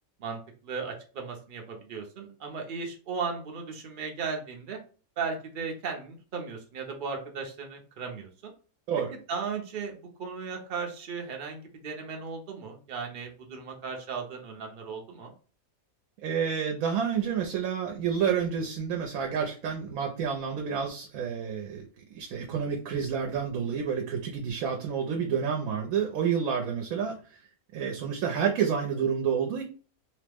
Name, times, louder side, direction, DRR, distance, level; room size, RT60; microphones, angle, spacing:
voice 1, 0.2-4.8 5.2-8.5 9.3-15.3, right 5 dB, 50° right, 2 dB, 0.6 m, -36 dB
voice 2, 16.2-27.4 27.7-29.6, right 7 dB, 75° right, 2 dB, 1.0 m, -29 dB
3.0 x 2.0 x 3.3 m, 0.39 s
omnidirectional pair, 1.5 m